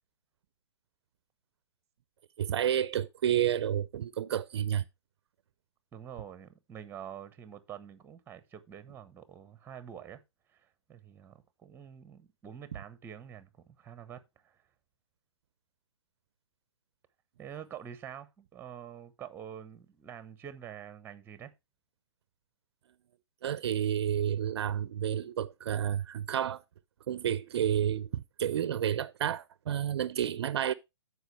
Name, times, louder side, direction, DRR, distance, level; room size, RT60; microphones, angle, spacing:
voice 1, 2.4-4.8 23.4-26.6 27.1-30.7, right 10 dB, 60° right, 0.5 m, -30 dB
voice 2, 5.9-10.2 10.5-14.6 17.4-21.5, right 9 dB, 15° right, 0.9 m, -47 dB
14.0 x 4.7 x 3.2 m
hypercardioid pair, 125°, 16 cm